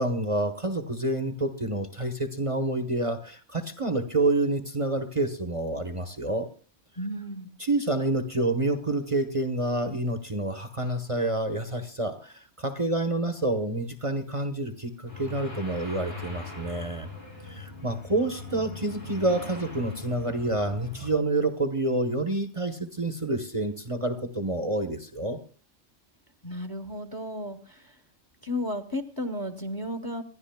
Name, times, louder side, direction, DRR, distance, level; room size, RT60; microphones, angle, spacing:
voice 1, 0.0-6.5 7.6-17.1 17.4-25.4, right 2 dB, 30° right, 7 dB, 0.9 m, -28 dB
voice 2, 7.0-7.5 26.4-28.0 28.4-30.2, left 1 dB, 20° left, 7 dB, 1.0 m, -33 dB
sound 1, 15.1-21.1, left 3 dB, 90° left, 7.1 m, -41 dB
26.5 x 11.0 x 2.2 m, 0.38 s
omnidirectional pair, 1.2 m